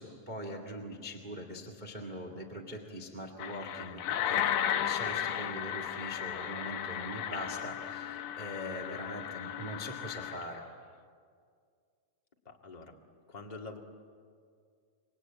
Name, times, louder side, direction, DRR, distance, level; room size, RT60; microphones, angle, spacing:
voice 1, 0.0-10.6, equal, 15° right, 2 dB, 1.7 m, -42 dB
sound 1, 3.4-10.5, left 10 dB, 85° left, 2.8 m, -35 dB
voice 2, 12.4-13.0 13.3-13.8, left 3 dB, 20° left, 1 dB, 1.3 m, -45 dB
28.0 x 24.5 x 8.8 m, 2.2 s
omnidirectional pair, 3.9 m